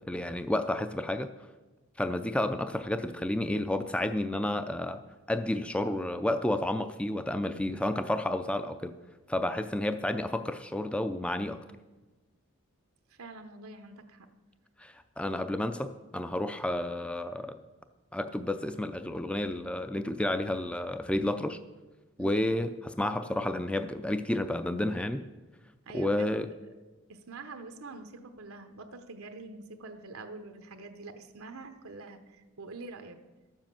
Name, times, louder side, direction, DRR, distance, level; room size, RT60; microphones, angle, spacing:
voice 1, 0.1-1.3 2.0-5.0 5.3-9.0 9.3-11.6 14.8-17.6 18.1-21.6 22.2-25.2 25.9-26.5, left 1 dB, 5° left, 9 dB, 0.4 m, -31 dB
voice 2, 13.1-14.3 22.2-22.3 25.9-26.5 27.1-33.2, right 3 dB, 85° right, 6 dB, 1.0 m, -45 dB
12.5 x 7.3 x 7.4 m, 1.2 s
head